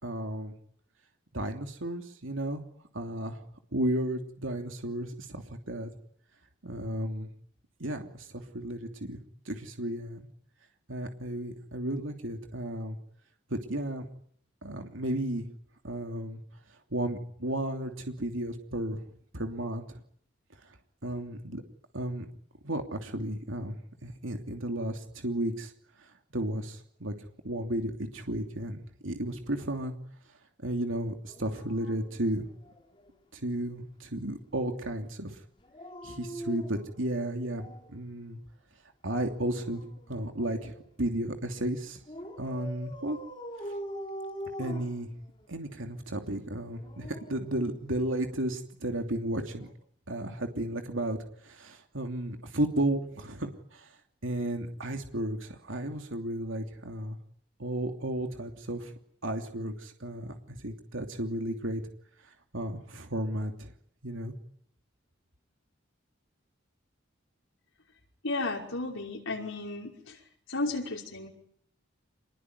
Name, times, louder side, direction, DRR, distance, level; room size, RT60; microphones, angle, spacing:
voice 1, 0.0-0.5 1.3-2.6 2.9-3.4 3.7-5.9 6.6-7.3 7.8-10.3 10.9-13.0 13.5-14.1 14.6-15.5 15.8-16.4 16.9-19.0 19.3-20.0 21.0-21.6 21.9-22.3 22.6-25.7 26.0-27.1 27.4-29.9 30.6-32.4 33.3-35.4 36.0-38.4 39.0-39.8 40.1-40.7 41.0-42.0 42.4-43.2 44.6-45.1 45.5-49.7 50.1-51.2 51.4-53.9 54.2-57.2 57.6-58.9 59.2-61.8 62.5-63.7 64.0-64.3, right 1 dB, 75° right, 4 dB, 2.9 m, -33 dB
Dog, 31.3-33.1 35.6-38.0 39.2-40.9 42.1-45.6 46.6-48.2 49.5-49.7, equal, 25° left, 5.2 m, -44 dB
voice 2, 68.2-70.2 70.5-71.3, left 2 dB, 85° left, -1 dB, 5.7 m, -33 dB
27.0 x 21.5 x 9.5 m, 0.65 s
head